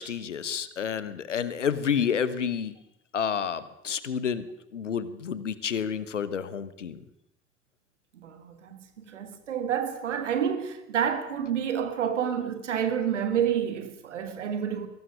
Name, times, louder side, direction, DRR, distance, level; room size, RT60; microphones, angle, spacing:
voice 1, 0.0-2.7 3.1-4.5 4.7-7.0, left 7 dB, 85° left, 1.0 m, -29 dB
voice 2, 8.1-8.8 9.0-14.9, right 8 dB, 80° right, 1.8 m, -29 dB
22.0 x 18.0 x 6.7 m
figure-of-eight pair, 45°, 36 cm